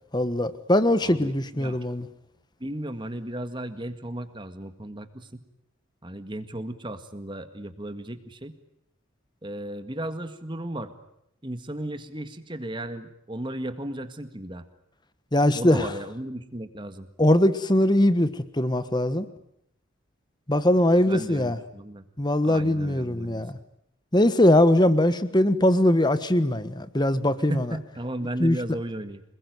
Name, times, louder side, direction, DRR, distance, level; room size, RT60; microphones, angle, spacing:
voice 1, 0.1-2.1 15.3-15.9 17.2-19.3 20.5-21.6 22.2-23.6 24.1-27.7 28.4-28.6, left 1 dB, 20° left, 13 dB, 1.3 m, -21 dB
voice 2, 1.0-1.9 2.6-5.4 6.0-8.5 9.4-10.9 11.4-14.6 15.5-17.1 20.9-22.1 22.4-23.4 27.5-29.2, right 1 dB, 25° right, 9 dB, 1.8 m, -35 dB
27.0 x 21.0 x 9.4 m, 0.76 s
head